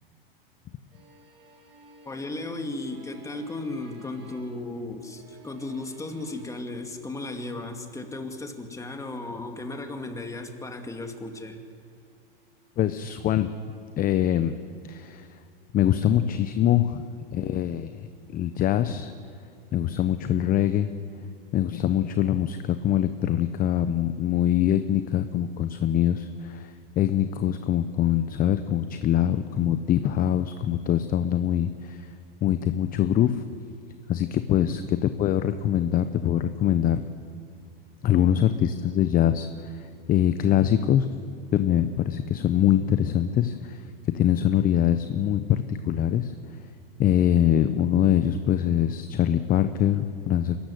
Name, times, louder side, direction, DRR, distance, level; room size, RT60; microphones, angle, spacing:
sound 1, 0.9-4.7 5.0-6.6, right 2 dB, 75° right, 6.0 m, -53 dB
voice 1, 2.1-11.6 34.5-34.9, left 2 dB, 10° left, 5 dB, 2.5 m, -35 dB
voice 2, 12.8-13.5 14.0-14.6 14.8-15.3 15.7-17.0 17.3-17.9 18.3-19.1 19.7-20.9 21.5-32.1 32.4-33.4 34.1-37.0 38.0-41.1 41.5-43.8 44.1-46.3 47.0-50.6, left 10 dB, 30° left, 11 dB, 0.9 m, -23 dB
24.5 x 14.5 x 10.0 m, 2.3 s
hypercardioid pair, 105°, 29 cm